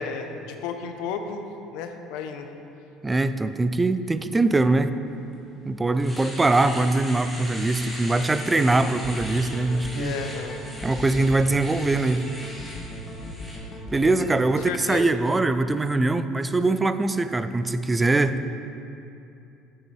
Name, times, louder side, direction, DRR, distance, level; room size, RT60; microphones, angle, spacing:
voice 1, 0.0-1.4 1.7-2.5 10.0-10.6 14.5-15.1, left 5 dB, 80° left, 6 dB, 0.7 m, -33 dB
voice 2, 3.0-4.9 5.6-10.2 10.8-12.3 13.9-18.6, right 2 dB, 15° right, 11 dB, 0.3 m, -22 dB
Domestic sounds home sounds, 5.3-5.4 5.8-13.6, equal, 5° left, 1.7 m, -39 dB
sound 1, 8.3-14.6, equal, 30° left, 1.5 m, -37 dB
10.0 x 7.6 x 3.2 m, 2.7 s
cardioid pair, 115°, 0 cm